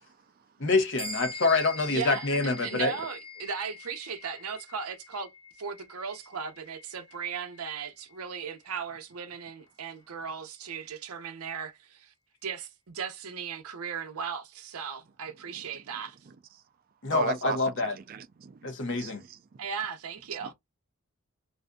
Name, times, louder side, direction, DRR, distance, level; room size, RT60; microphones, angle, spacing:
voice 1, 0.6-2.9 17.0-17.9 18.6-19.2, left 3 dB, 55° left, 0.8 m, -26 dB
sound 1, 1.0-10.7, left 3 dB, 10° right, 1.4 m, -45 dB
voice 2, 1.9-5.3 5.6-12.1 12.4-16.2 19.6-20.5, right 6 dB, 75° right, 0.6 m, -37 dB
voice 3, 17.1-18.7 19.0-19.4, right 6 dB, 40° right, 0.3 m, -36 dB
2.6 x 2.4 x 2.2 m
head